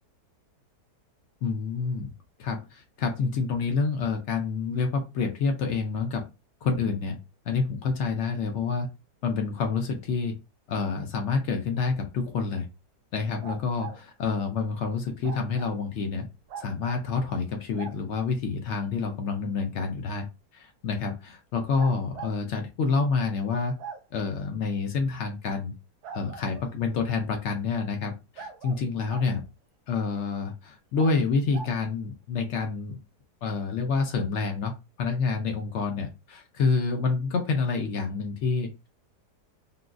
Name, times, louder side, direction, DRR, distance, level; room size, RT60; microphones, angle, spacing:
voice 1, 1.4-2.1 2.4-6.2 6.6-7.2 7.5-8.9 9.2-10.4 10.7-12.7 13.1-16.3 16.6-20.3 20.5-23.8 24.1-25.7 26.1-29.5 29.9-33.0 33.4-34.7 35.0-38.9, left 4 dB, 75° left, 4 dB, 0.6 m, -28 dB
sound 1, 13.4-14.0 15.2-15.8 16.5-17.0 17.7-18.0 19.7-19.8 21.8-22.3 23.8-24.0 26.0-26.7 28.4-29.3 31.0-31.2 31.5-31.8, right 5 dB, 75° right, 1.1 m, -41 dB
3.8 x 2.3 x 2.4 m, 0.27 s
omnidirectional pair, 1.8 m